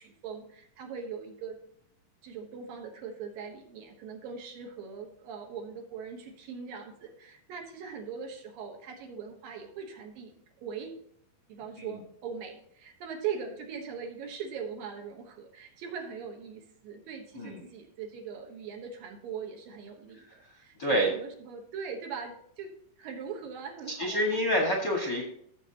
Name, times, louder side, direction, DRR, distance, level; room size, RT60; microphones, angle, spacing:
voice 1, 0.0-1.6 2.2-10.9 11.5-22.7 23.0-24.4, right 6 dB, 65° right, 2 dB, 2.7 m, -41 dB
voice 2, 24.0-25.2, equal, 50° left, -1 dB, 1.3 m, -27 dB
15.0 x 7.4 x 2.9 m, 0.66 s
omnidirectional pair, 4.7 m